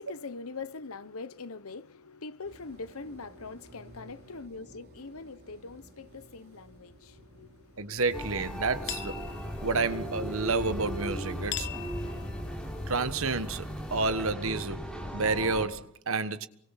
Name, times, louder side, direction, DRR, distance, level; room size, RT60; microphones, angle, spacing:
voice 1, 0.0-8.0, left 4 dB, 75° left, 1.1 m, -43 dB
sound 1, 2.4-11.4, right 1 dB, 45° right, 4.5 m, -55 dB
voice 2, 7.8-9.2 9.6-11.7 12.9-14.8 15.1-16.5, right 3 dB, 70° right, 1.4 m, -30 dB
sound 2, 8.0-14.1, left 9 dB, 50° left, 1.2 m, -44 dB
sound 3, 8.1-15.7, equal, 5° left, 5.1 m, -37 dB
29.0 x 24.0 x 5.9 m
head